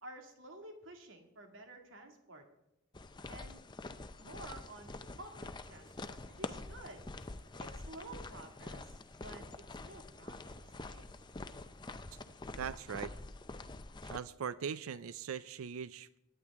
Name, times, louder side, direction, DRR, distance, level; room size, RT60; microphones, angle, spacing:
voice 1, 0.0-2.5 3.3-3.7 4.2-7.0 7.6-11.1, right 2 dB, 70° right, 3 dB, 2.2 m, -52 dB
sound 1, 2.9-14.2, left 2 dB, 20° left, 0.5 m, -46 dB
sound 2, 4.2-12.8, right 2 dB, 15° right, 0.8 m, -64 dB
voice 2, 12.6-13.1 14.0-16.2, right 7 dB, 90° right, 15 dB, 0.4 m, -40 dB
23.5 x 9.9 x 3.6 m, 0.86 s
head